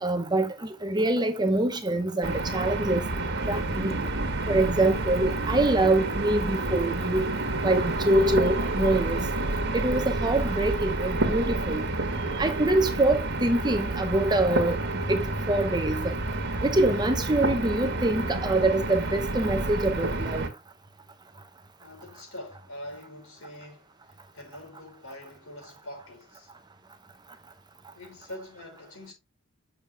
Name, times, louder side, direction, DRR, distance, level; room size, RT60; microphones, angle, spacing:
voice 1, 0.0-3.0 3.5-4.0 4.5-7.3 7.6-9.2 9.7-11.8 12.4-14.8 15.1-16.1 16.6-20.4, right 2 dB, 20° right, 0.8 m, -25 dB
sound 1, 2.2-20.5, right 2 dB, 50° right, 1.6 m, -29 dB
sound 2, 3.4-10.8, right 1 dB, 75° right, 1.3 m, -38 dB
voice 2, 21.8-26.5 27.9-29.1, left 1 dB, 70° left, 5.5 m, -44 dB
7.4 x 6.6 x 3.4 m
head